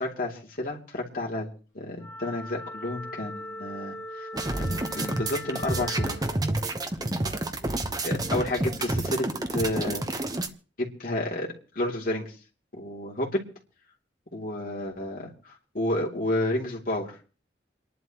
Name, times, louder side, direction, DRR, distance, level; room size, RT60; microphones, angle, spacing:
voice 1, 0.0-1.5 1.7-4.3 4.6-6.2 8.0-10.1 10.8-11.5 11.7-12.3 12.7-13.4 14.3-17.1, left 1 dB, 50° left, -2 dB, 3.1 m, -31 dB
Wind instrument woodwind instrument, 2.0-6.3, left 1 dB, 15° left, 2.8 m, -40 dB
sound 1, 4.3-10.5, right 2 dB, 20° right, 1.0 m, -29 dB
29.0 x 11.0 x 3.1 m, 0.38 s
head